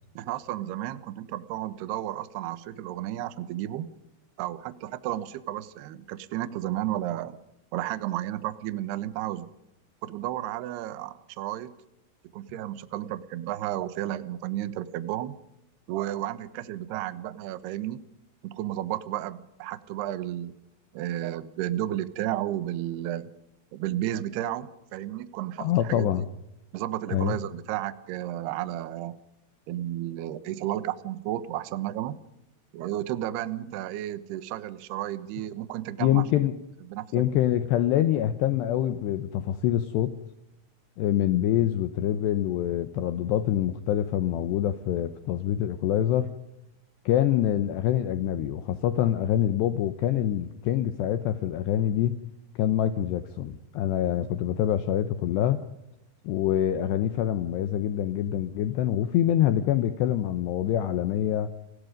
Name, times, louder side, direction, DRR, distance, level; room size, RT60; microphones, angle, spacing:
voice 1, 0.2-3.9 4.4-7.4 7.7-9.5 10.0-11.7 12.3-15.4 15.9-18.0 18.4-20.6 20.9-23.3 23.7-26.3 26.7-29.2 29.7-32.2 32.7-36.5 36.9-37.2, right 13 dB, 70° right, 14 dB, 2.7 m, -32 dB
voice 2, 25.6-26.3 27.1-27.4 36.0-36.6 37.1-40.2 41.0-46.3 47.1-52.2 52.6-55.6 56.2-61.5, left 11 dB, 75° left, 11 dB, 2.6 m, -25 dB
30.0 x 20.0 x 5.2 m, 0.87 s
omnidirectional pair, 5.9 m